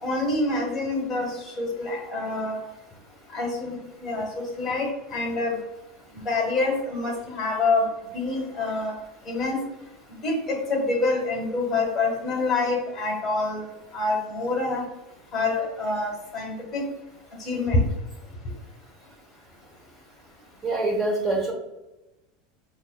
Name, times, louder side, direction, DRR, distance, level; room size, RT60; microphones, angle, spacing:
voice 1, 0.0-2.6 3.3-5.6 6.2-8.9 9.2-9.6 10.2-13.6 13.9-14.8 15.3-16.9 17.4-17.8, left 2 dB, 20° left, 0 dB, 1.3 m, -26 dB
voice 2, 20.6-21.5, right 2 dB, 20° right, 0 dB, 1.0 m, -25 dB
5.3 x 2.6 x 2.2 m, 0.97 s
supercardioid pair, 130°, 0 cm